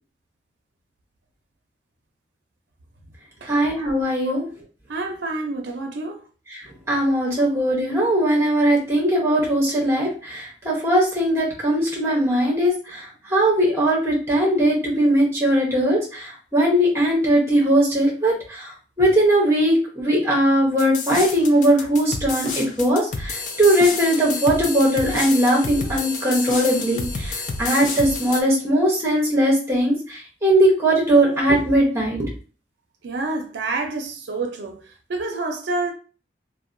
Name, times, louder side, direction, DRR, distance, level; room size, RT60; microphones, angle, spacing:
voice 1, 3.5-4.4 6.5-32.3, right 1 dB, 15° right, 0.8 m, -20 dB
voice 2, 4.9-6.2 33.0-34.8 35.1-35.9, right 3 dB, 85° right, 0.5 m, -28 dB
sound 1, 20.8-28.4, left 3 dB, 45° left, 0.4 m, -29 dB
2.7 x 2.1 x 2.5 m
head